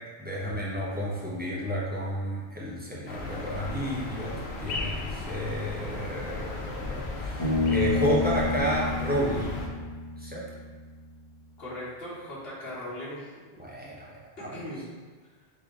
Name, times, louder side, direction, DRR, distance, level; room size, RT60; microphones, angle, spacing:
voice 1, 0.2-9.6 10.2-10.5 13.6-14.5, equal, 10° right, -6 dB, 0.6 m, -31 dB
sound 1, 3.1-9.7, left 2 dB, 85° left, 0.9 m, -36 dB
Bass guitar, 7.4-10.9, left 3 dB, 25° left, 1.6 m, -29 dB
voice 2, 11.6-13.6 14.5-14.8, left 1 dB, 65° left, -8 dB, 1.5 m, -39 dB
3.8 x 3.2 x 3.6 m, 1.4 s
omnidirectional pair, 1.1 m